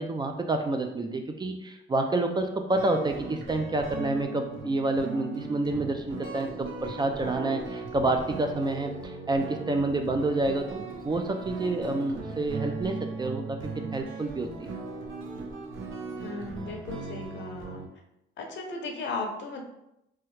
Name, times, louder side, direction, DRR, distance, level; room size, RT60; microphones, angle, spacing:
voice 1, 0.0-14.8 15.4-15.5, right 2 dB, 20° right, 4 dB, 0.3 m, -29 dB
sound 1, 2.8-17.9, right 4 dB, 80° right, 0.6 m, -38 dB
voice 2, 16.2-17.8 18.4-19.6, left 3 dB, 65° left, 3 dB, 0.7 m, -36 dB
3.1 x 2.3 x 3.1 m, 0.84 s
cardioid pair, 90°, 20 cm